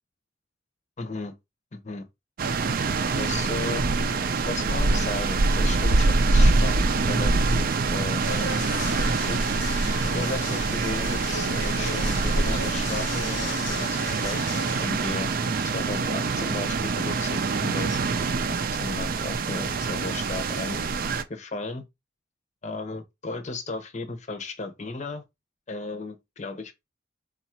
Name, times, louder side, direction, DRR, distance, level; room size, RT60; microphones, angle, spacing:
voice 1, 1.0-1.3 1.7-2.1 3.2-3.9 4.5-8.2 9.3-9.5 10.0-15.3 15.7-18.0 18.5-20.8 21.3-21.8 22.6-25.2 25.7-26.9, left 3 dB, 40° left, 0.8 m, -35 dB
sound 1, 2.4-21.2, right 3 dB, 50° right, 0.4 m, -25 dB
sound 2, 8.2-14.8, left 4 dB, 65° left, 0.9 m, -36 dB
4.0 x 2.5 x 4.3 m
head